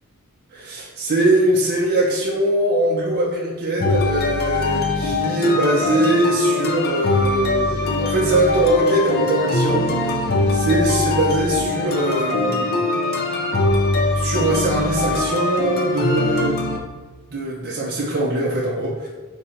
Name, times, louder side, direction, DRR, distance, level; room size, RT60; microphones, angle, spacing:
voice 1, 0.5-10.1 10.5-12.9 14.1-16.6 17.3-19.1, right 1 dB, 45° right, -3 dB, 0.6 m, -21 dB
sound 1, 3.8-16.8, left 2 dB, 45° left, 0.5 m, -22 dB
3.6 x 2.8 x 4.3 m, 1.3 s
head